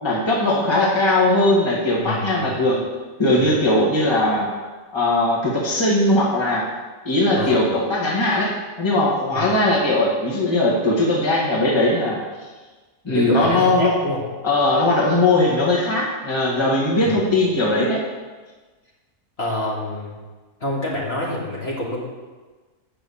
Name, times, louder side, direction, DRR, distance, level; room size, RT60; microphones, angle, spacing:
voice 1, 0.0-2.8 3.2-4.5 4.9-6.7 7.0-8.5 8.8-12.2 13.0-13.9 14.4-18.0, left 2 dB, 20° left, -5 dB, 1.8 m, -19 dB
voice 2, 2.0-2.5 3.4-3.7 7.3-7.6 9.3-9.5 13.1-14.2 17.0-17.2 19.4-20.2 20.6-22.0, left 1 dB, 50° left, -4 dB, 2.3 m, -27 dB
8.3 x 6.3 x 7.1 m, 1.3 s
omnidirectional pair, 1.4 m